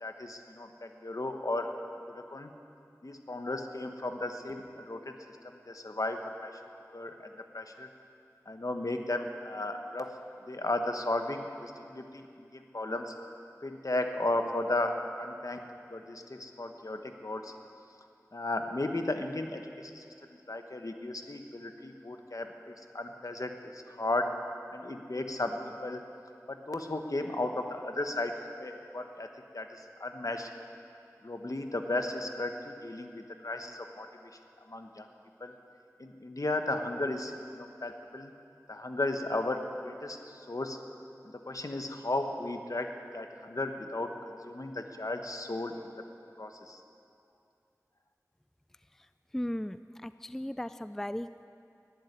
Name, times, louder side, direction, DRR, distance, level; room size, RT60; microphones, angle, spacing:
voice 1, 0.0-1.7 2.1-2.5 3.0-5.1 5.4-6.5 6.9-7.9 8.5-10.1 10.5-12.2 12.5-13.1 13.6-15.6 15.9-17.5 18.3-20.0 20.5-24.3 24.7-26.0 26.5-28.3 28.6-29.3 29.5-30.5 31.2-34.1 34.7-35.1 35.4-35.5 36.0-38.3 38.7-40.8 41.5-45.9 46.4-46.8, left 2 dB, 65° left, 5 dB, 1.2 m, -35 dB
voice 2, 49.3-51.5, left 1 dB, 5° left, 13 dB, 0.3 m, -36 dB
11.5 x 11.0 x 9.8 m, 2.5 s
wide cardioid pair, 40°, 6 cm